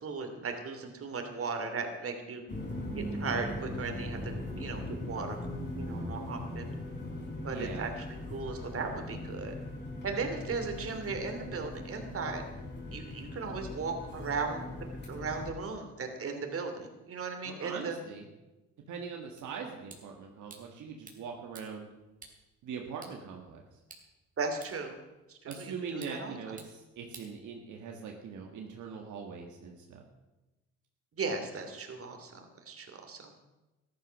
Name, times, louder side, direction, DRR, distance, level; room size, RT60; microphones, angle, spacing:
voice 1, 0.0-2.4 2.9-5.4 5.7-6.7 7.4-9.5 10.0-12.4 12.9-18.0 24.4-25.0 25.3-26.6 31.1-33.3, right 4 dB, 50° right, 5 dB, 2.8 m, -37 dB
sound 1, 2.5-15.5, left 1 dB, 35° left, 4.7 m, -40 dB
voice 2, 7.5-7.8 17.5-18.3 18.9-21.9 22.6-23.6 25.5-30.0, right 5 dB, 75° right, 1 dB, 1.8 m, -42 dB
sound 2, 19.4-28.0, right 3 dB, 25° right, 3.2 m, -56 dB
14.0 x 11.5 x 6.3 m, 1.1 s
cardioid pair, 90°, 30 cm